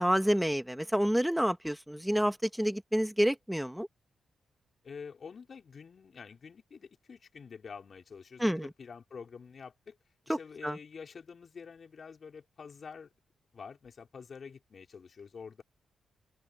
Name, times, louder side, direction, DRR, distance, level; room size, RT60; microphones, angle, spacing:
voice 1, 0.0-3.9 8.4-8.7 10.3-10.4 10.6-10.8, equal, 5° right, 2.1 m, -28 dB
voice 2, 4.8-10.0 10.3-13.1 13.5-15.6, left 5 dB, 55° left, 4.4 m, -47 dB
open air
supercardioid pair, 50°, 0 cm